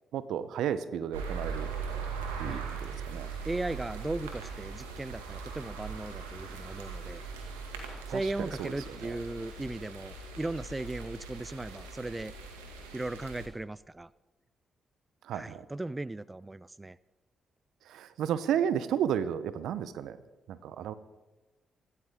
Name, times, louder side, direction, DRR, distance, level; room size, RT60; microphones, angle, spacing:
voice 1, 0.1-1.7 2.4-3.3 8.1-9.2 15.2-15.6 17.9-20.2 20.5-20.9, right 9 dB, 70° right, 15 dB, 0.8 m, -33 dB
sound 1, 1.1-13.5, right 5 dB, 90° right, 1.9 m, -40 dB
voice 2, 3.4-7.2 8.1-12.3 12.9-14.1 15.3-17.0, right 2 dB, 20° right, 19 dB, 0.4 m, -37 dB
25.0 x 13.0 x 3.7 m, 1.1 s
hypercardioid pair, 40°, 0 cm